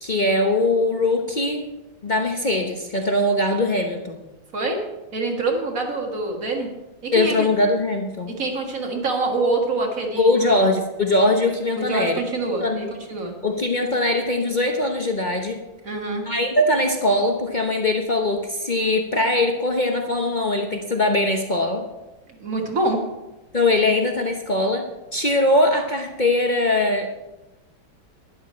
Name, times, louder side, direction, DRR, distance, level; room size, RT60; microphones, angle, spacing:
voice 1, 0.0-1.6 2.0-4.2 7.1-8.3 10.2-12.2 12.6-12.8 13.4-15.6 16.3-21.9 23.5-27.1, left 2 dB, 55° left, 3 dB, 0.5 m, -21 dB
voice 2, 5.1-6.7 7.0-7.5 8.3-10.7 11.8-13.3 15.8-16.2 22.3-23.0, right 2 dB, 45° right, 2 dB, 2.0 m, -25 dB
12.5 x 11.0 x 4.3 m, 1.0 s
omnidirectional pair, 2.2 m